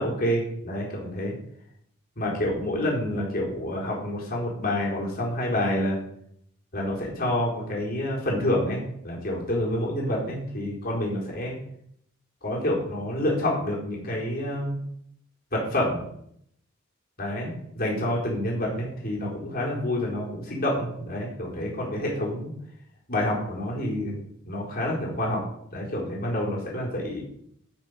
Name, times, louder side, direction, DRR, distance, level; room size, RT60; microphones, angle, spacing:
voice 1, 0.0-1.3 2.2-6.0 6.7-11.6 12.4-14.8 15.5-16.1 17.2-22.5 23.1-25.4 25.7-27.2, left 1 dB, 45° left, -3 dB, 4.2 m, -28 dB
12.0 x 6.2 x 6.9 m, 0.70 s
head